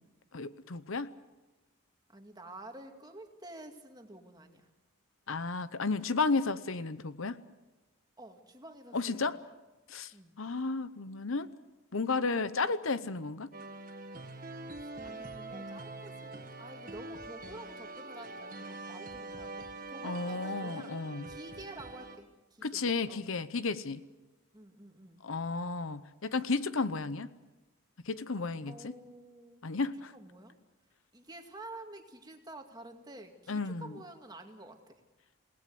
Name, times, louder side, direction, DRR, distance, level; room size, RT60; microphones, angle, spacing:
voice 1, 0.3-1.1 5.3-7.4 8.9-9.4 9.9-11.5 11.9-13.5 20.0-21.3 22.6-24.0 25.2-27.3 28.1-28.9 29.6-30.1 33.5-33.8, left 3 dB, 70° left, 14 dB, 0.9 m, -33 dB
voice 2, 2.1-4.7 8.2-9.3 10.1-10.4 14.8-21.0 21.3-22.8 23.1-23.2 23.7-23.8 24.5-25.2 28.4-30.6 31.1-34.9, right 2 dB, 20° right, 4 dB, 2.2 m, -50 dB
sound 1, 13.5-22.2, right 2 dB, 40° right, 2.0 m, -44 dB
28.5 x 18.5 x 7.9 m, 1.1 s
head